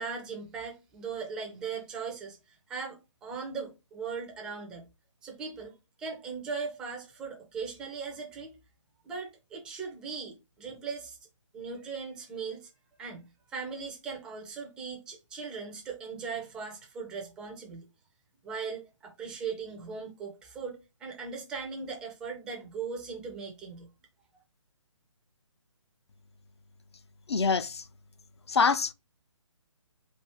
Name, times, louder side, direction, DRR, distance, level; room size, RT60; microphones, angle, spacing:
voice 1, 0.0-2.4 2.7-4.8 5.2-5.7 6.0-8.6 9.0-11.2 11.5-12.7 13.0-17.9 18.4-23.9, right 5 dB, 5° right, 0.4 m, -39 dB
voice 2, 27.3-27.8 28.5-28.9, left 5 dB, 55° left, 0.5 m, -25 dB
4.4 x 2.4 x 3.3 m
figure-of-eight pair, 140°, 16 cm